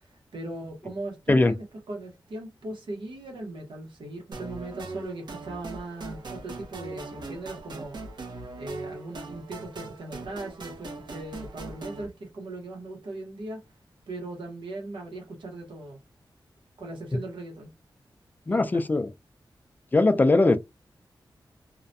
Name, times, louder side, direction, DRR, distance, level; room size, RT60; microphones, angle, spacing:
voice 1, 0.0-8.0 8.6-13.6 14.1-16.0 16.8-17.7 18.5-18.8, right 2 dB, 90° right, 1.0 m, -39 dB
sound 1, 4.3-12.1, right 3 dB, 65° right, 0.6 m, -40 dB
voice 2, 18.5-19.1 19.9-20.6, left 2 dB, 20° left, 0.4 m, -20 dB
2.4 x 2.1 x 2.6 m
wide cardioid pair, 105°, 8 cm